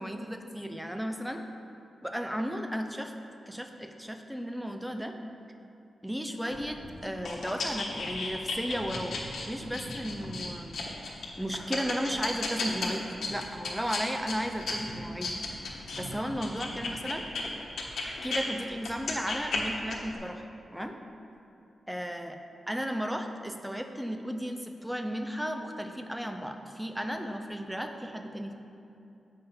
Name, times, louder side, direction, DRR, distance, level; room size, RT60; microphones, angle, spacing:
voice 1, 0.0-1.4 2.0-3.1 3.5-5.2 6.0-9.2 9.4-10.7 11.3-15.4 16.0-17.2 18.0-21.0 21.9-22.4 22.7-28.5, equal, 5° right, 5 dB, 0.5 m, -34 dB
sound 1, 6.5-18.4 18.8-20.1, left 3 dB, 90° left, 1.3 m, -35 dB
8.4 x 5.6 x 5.4 m, 2.7 s
wide cardioid pair, 120°, 0 cm